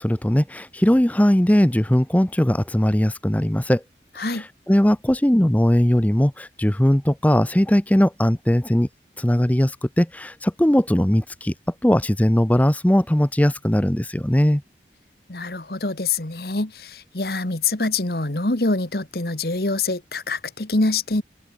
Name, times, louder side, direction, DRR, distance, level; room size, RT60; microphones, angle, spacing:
voice 1, 0.0-3.8 4.2-8.9 9.2-11.5 11.8-14.6, equal, 10° left, 0.6 m, -19 dB
voice 2, 15.3-21.2, left 3 dB, 60° left, 1.7 m, -25 dB
head